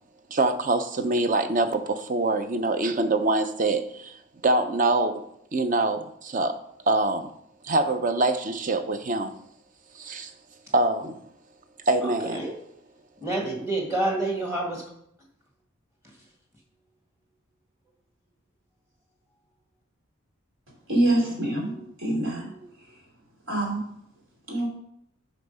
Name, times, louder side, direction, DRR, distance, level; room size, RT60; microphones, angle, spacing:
voice 1, 0.3-4.1 4.4-5.2 5.5-6.6 6.9-7.3 7.6-9.3 9.9-10.3 10.7-11.2 11.9-12.4, right 2 dB, 40° right, 8 dB, 0.6 m, -24 dB
voice 2, 12.0-12.5 13.2-14.8 21.0-21.2 21.6-21.9 22.3-22.7, right 2 dB, 15° right, 0 dB, 1.8 m, -29 dB
voice 3, 20.9-21.7 22.0-22.5 23.5-23.8 24.5-24.7, right 1 dB, 70° right, -1 dB, 3.0 m, -24 dB
8.2 x 5.2 x 5.5 m, 0.74 s
head